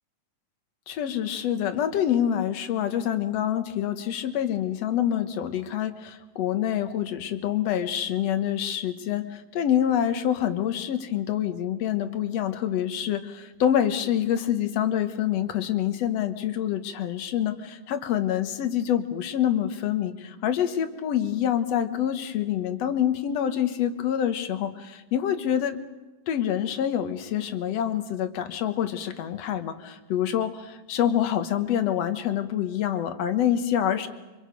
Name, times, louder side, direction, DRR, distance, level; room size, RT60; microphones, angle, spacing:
voice 1, 0.9-25.8 26.3-34.1, left 10 dB, 60° left, 9 dB, 2.1 m, -26 dB
27.5 x 25.0 x 5.2 m, 1.2 s
omnidirectional pair, 3.8 m